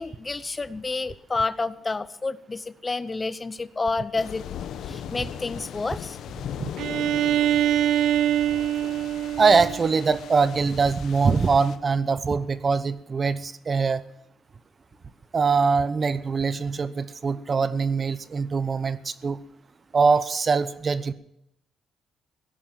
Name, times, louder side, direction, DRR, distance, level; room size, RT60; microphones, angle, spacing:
voice 1, 0.0-4.4 4.8-6.2, left 3 dB, 25° left, 15 dB, 0.7 m, -29 dB
sound 1, 4.2-11.8, left 9 dB, 75° left, 0.9 m, -38 dB
Bowed string instrument, 6.8-10.5, right 11 dB, 80° right, 0.9 m, -24 dB
voice 2, 9.4-14.0 15.3-19.4 19.9-21.1, right 5 dB, 40° right, 15 dB, 0.9 m, -23 dB
16.5 x 11.0 x 7.4 m, 0.81 s
cardioid pair, 90°, 0 cm